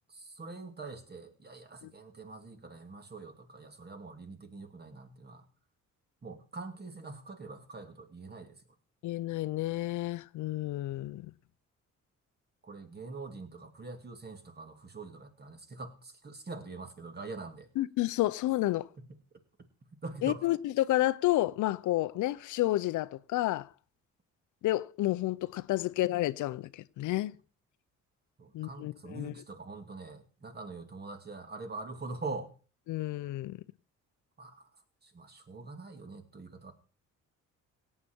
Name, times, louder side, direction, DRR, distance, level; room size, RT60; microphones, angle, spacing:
voice 1, 0.1-5.5 6.2-8.6 12.6-17.7 19.0-19.1 20.0-20.5 28.4-32.5 34.4-34.7 35.0-36.7, right 3 dB, 35° right, 2.3 m, -44 dB
voice 2, 9.0-11.3 17.8-18.9 20.2-23.7 24.6-27.3 28.5-29.3 32.9-33.6, left 16 dB, 80° left, 0.6 m, -30 dB
17.0 x 8.5 x 4.5 m
cardioid pair, 90°, 30 cm